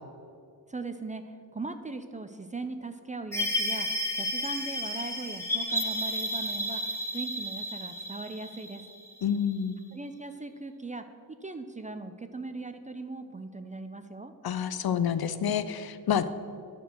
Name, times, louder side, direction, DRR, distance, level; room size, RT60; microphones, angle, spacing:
voice 1, 0.7-8.8 9.9-11.0 11.4-14.3, right 3 dB, 20° right, 8 dB, 0.4 m, -39 dB
sound 1, 3.3-9.6, left 1 dB, 5° left, 1.0 m, -32 dB
voice 2, 9.2-9.7 14.4-16.3, left 8 dB, 65° left, 12 dB, 0.5 m, -28 dB
9.9 x 4.5 x 6.7 m, 2.4 s
wide cardioid pair, 105°, 40 cm